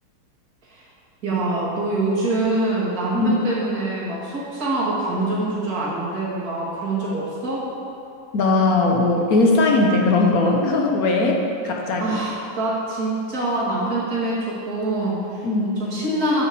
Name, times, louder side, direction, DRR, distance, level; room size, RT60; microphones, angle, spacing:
voice 1, 1.2-7.7 12.0-15.4 15.8-16.4, right 2 dB, 40° right, -7 dB, 2.8 m, -25 dB
voice 2, 8.3-12.0 15.4-15.8, left 2 dB, 55° left, 0 dB, 1.2 m, -19 dB
9.5 x 5.8 x 6.8 m, 2.6 s
omnidirectional pair, 2.4 m